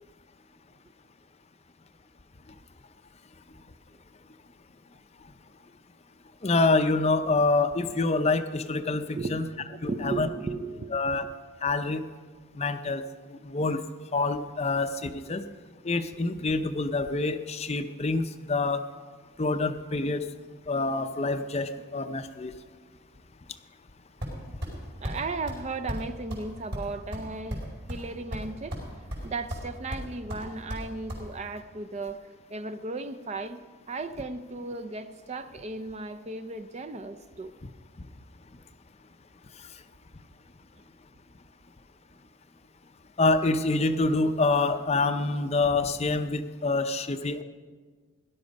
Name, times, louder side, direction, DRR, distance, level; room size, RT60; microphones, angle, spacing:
voice 1, 6.4-9.4 9.8-10.3 10.9-11.2 11.6-12.0 12.6-13.0 13.4-13.8 14.1-15.4 15.8-18.8 19.4-20.2 20.7-22.5 43.2-47.4, left 3 dB, 30° left, 0.5 m, -26 dB
voice 2, 9.2-11.3 25.0-27.6 27.9-28.8 29.2-33.6 33.9-37.5, right 3 dB, 30° right, 0.4 m, -36 dB
sound 1, 24.2-24.8 25.0-25.2 25.5-25.6 25.9-26.0 26.3-26.4 26.7-28.0 28.3-28.9 29.1-29.7 29.9-31.2, equal, 50° right, 4.8 m, -34 dB
17.5 x 11.5 x 5.3 m
head